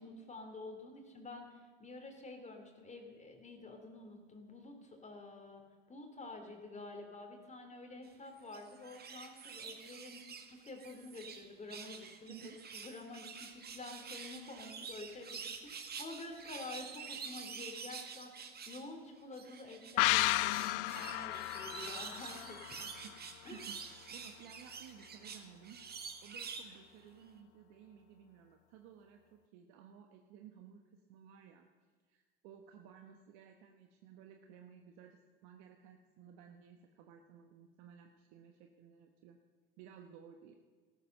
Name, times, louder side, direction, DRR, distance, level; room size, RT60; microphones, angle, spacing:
voice 1, 0.0-5.6 5.9-22.9 23.4-23.6, left 2 dB, 25° left, 4 dB, 3.3 m, -49 dB
sound 1, 8.4-11.4 11.7-18.9 19.3-26.8 27.2-27.3, right 6 dB, 35° right, 1.9 m, -48 dB
voice 2, 12.3-12.6 23.0-23.1 23.5-25.8 26.2-31.7 32.1-39.4 39.8-40.6, right 8 dB, 65° right, 4 dB, 1.3 m, -56 dB
sound 2, 20.0-23.4 23.7-23.8, left 20 dB, 70° left, 0.5 m, -33 dB
13.5 x 13.5 x 6.8 m, 1.5 s
hypercardioid pair, 80°, 29 cm